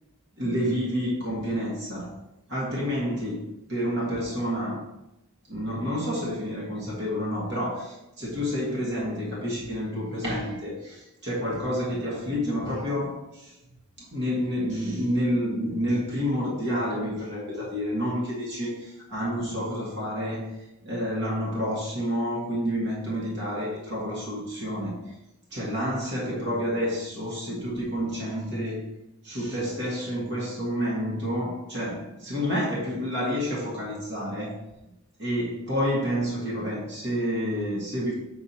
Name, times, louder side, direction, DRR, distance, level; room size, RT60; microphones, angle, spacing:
voice 1, 0.4-2.2 2.5-4.8 5.5-13.5 14.0-25.1 25.5-28.8 29.2-34.6 35.2-38.1, equal, 50° right, -5 dB, 1.7 m, -29 dB
7.7 x 4.2 x 4.2 m, 0.92 s
head